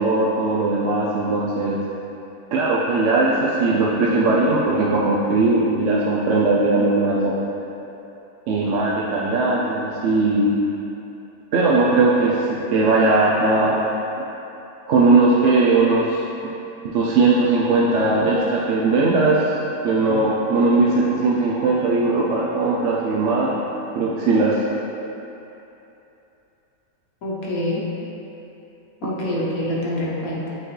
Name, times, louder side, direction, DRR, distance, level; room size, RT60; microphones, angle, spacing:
voice 1, 0.0-1.8 2.5-7.3 8.5-10.5 11.5-13.8 14.9-16.2 16.8-19.5 19.8-23.6 23.9-24.6, right 3 dB, 65° right, -5 dB, 0.9 m, -19 dB
voice 2, 27.2-27.8 29.0-30.5, left 1 dB, 90° left, -5 dB, 1.6 m, -26 dB
8.6 x 4.4 x 3.2 m, 3.0 s
omnidirectional pair, 1.5 m